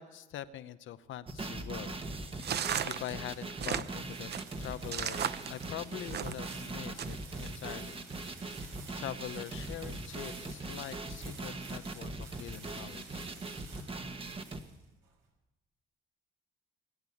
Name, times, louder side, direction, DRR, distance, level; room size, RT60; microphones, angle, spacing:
voice 1, 0.0-2.0 2.8-4.3 4.6-8.0 8.6-13.3, left 12 dB, 75° left, 13 dB, 0.8 m, -43 dB
sound 1, 1.3-14.6, right 2 dB, 25° right, 1.4 m, -40 dB
sound 2, 1.6-15.1, right 4 dB, 90° right, 5.9 m, -53 dB
sound 3, 2.4-6.6 7.0-7.5, right 9 dB, 55° right, 0.7 m, -35 dB
20.0 x 8.2 x 8.6 m, 1.0 s
cardioid pair, 90°, 20 cm